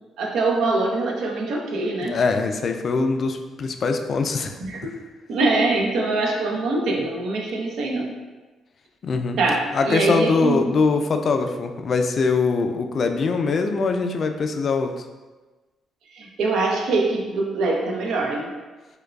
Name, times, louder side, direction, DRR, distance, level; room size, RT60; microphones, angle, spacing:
voice 1, 0.2-2.2 4.6-4.9 5.3-8.1 9.4-10.6 16.1-18.5, right 3 dB, 80° right, 0 dB, 0.6 m, -23 dB
voice 2, 2.0-4.5 9.0-9.4 9.7-14.9, left 4 dB, 50° left, 6 dB, 0.3 m, -22 dB
4.6 x 2.2 x 2.3 m, 1.2 s
cardioid pair, 90°, 0 cm